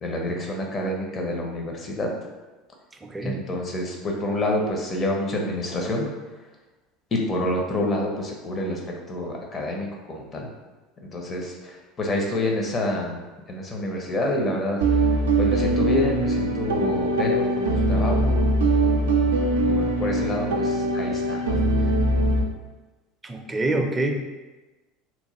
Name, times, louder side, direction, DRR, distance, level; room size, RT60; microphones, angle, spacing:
voice 1, 0.0-2.1 3.2-6.1 7.1-8.8 9.1-10.5 11.1-13.2 13.5-14.8 15.4-19.1 19.7-21.6, left 1 dB, 35° left, 0 dB, 0.7 m, -28 dB
voice 2, 3.0-3.4 23.2-24.1, right 2 dB, 20° right, 3 dB, 0.4 m, -26 dB
sound 1, 14.8-22.4, right 1 dB, 85° right, 0.3 m, -22 dB
3.0 x 2.2 x 3.0 m, 1.1 s
hypercardioid pair, 80°, 0 cm